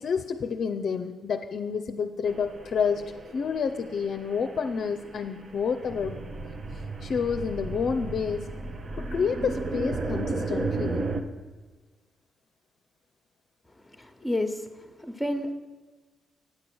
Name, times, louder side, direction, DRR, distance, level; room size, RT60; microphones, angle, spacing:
voice 1, 0.0-6.2 7.0-8.5 9.0-11.1, left 6 dB, 60° left, 5 dB, 0.5 m, -29 dB
sound 1, 2.3-11.2, right 3 dB, 45° right, 0.9 m, -34 dB
voice 2, 13.8-15.5, left 1 dB, 5° left, 7 dB, 1.2 m, -31 dB
9.3 x 6.8 x 6.1 m, 1.3 s
supercardioid pair, 60°, 0 cm